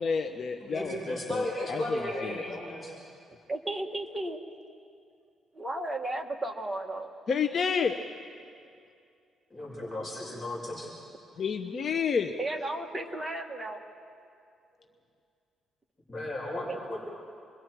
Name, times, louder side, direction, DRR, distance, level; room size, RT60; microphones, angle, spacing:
voice 1, 0.0-2.4 7.3-8.0 11.4-12.3, left 6 dB, 50° left, 6 dB, 0.8 m, -30 dB
voice 2, 0.6-2.9 9.5-10.9 16.1-17.0, left 1 dB, 25° left, -5 dB, 5.9 m, -35 dB
voice 3, 3.5-4.4 5.5-7.1 12.4-13.8, right 2 dB, 15° right, 2 dB, 1.8 m, -34 dB
28.0 x 22.0 x 4.7 m, 2.4 s
cardioid pair, 120°, 0 cm